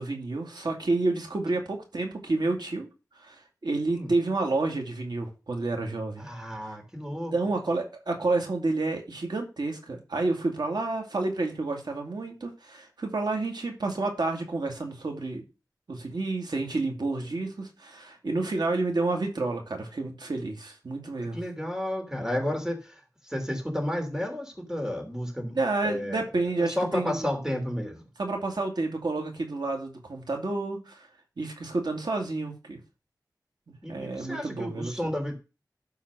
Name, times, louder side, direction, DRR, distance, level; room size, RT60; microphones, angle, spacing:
voice 1, 0.0-2.9 3.2-6.2 7.3-15.4 15.9-21.4 25.5-27.3 28.2-31.1 31.4-32.8 33.9-34.9, right 3 dB, 90° right, 3 dB, 2.3 m, -29 dB
voice 2, 6.2-7.3 21.3-26.2 26.6-28.0 33.8-35.3, left 1 dB, 10° right, 4 dB, 3.0 m, -32 dB
12.0 x 4.0 x 6.2 m, 0.31 s
wide cardioid pair, 65°, 7 cm